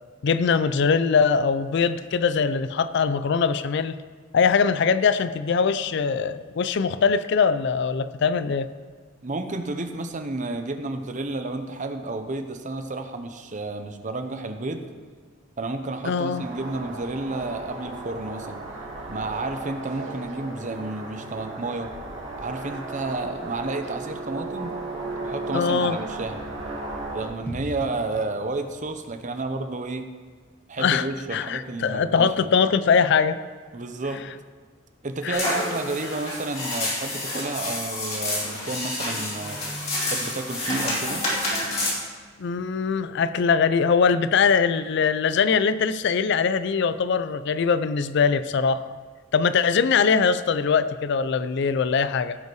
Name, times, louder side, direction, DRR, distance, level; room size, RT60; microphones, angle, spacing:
voice 1, 0.2-4.0 4.3-8.7 16.0-16.4 25.5-26.0 30.8-33.4 35.2-35.6 42.4-49.0 49.3-52.4, left 5 dB, 60° left, 13 dB, 0.4 m, -22 dB
voice 2, 9.2-14.9 15.6-18.6 19.1-21.9 22.4-24.7 25.2-26.4 27.1-30.1 30.7-32.5 33.7-34.2 35.0-39.6 40.0-41.3, right 2 dB, 40° right, 7 dB, 0.8 m, -31 dB
sound 1, 16.3-27.3, right 2 dB, 75° right, 2.2 m, -35 dB
sound 2, 27.5-31.4 31.7-31.8, equal, 10° left, 1.8 m, -42 dB
sound 3, 35.3-41.9, left 1 dB, 35° left, 2.9 m, -28 dB
16.0 x 5.5 x 4.7 m, 1.6 s
head